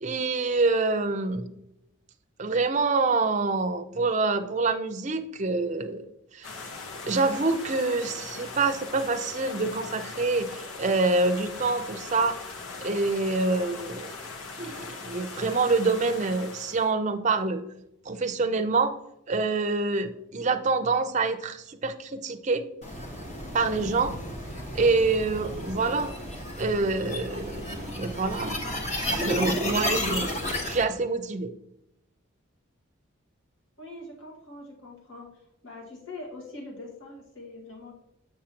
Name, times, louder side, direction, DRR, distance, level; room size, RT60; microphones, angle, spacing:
voice 1, 0.0-1.5 2.4-6.0 6.3-6.5 7.1-12.4 12.8-14.1 14.6-17.6 18.1-18.9 19.3-22.7 23.5-24.1 24.7-26.1 26.6-28.6 28.8-31.5, right 3 dB, 35° right, 7 dB, 0.5 m, -26 dB
sound 1, 6.4-16.9, left 4 dB, 85° left, 1.1 m, -40 dB
sound 2, 22.8-30.8, left 1 dB, 35° left, 1.1 m, -32 dB
voice 2, 33.8-37.9, left 2 dB, 65° left, -2 dB, 1.8 m, -43 dB
7.5 x 6.3 x 2.9 m, 0.82 s
head